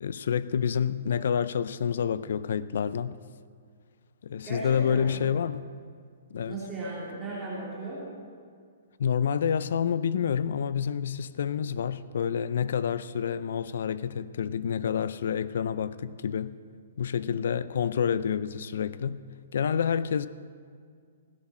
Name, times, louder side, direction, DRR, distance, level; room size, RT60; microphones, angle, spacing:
voice 1, 0.0-3.2 4.2-5.7 6.3-6.6 9.0-16.6 17.0-19.2 19.5-20.3, left 7 dB, 60° left, 0.4 m, -28 dB
voice 2, 4.4-5.2 6.5-8.0, right 2 dB, 10° right, 2.9 m, -36 dB
17.0 x 11.0 x 4.3 m
hypercardioid pair, 175°, 0 cm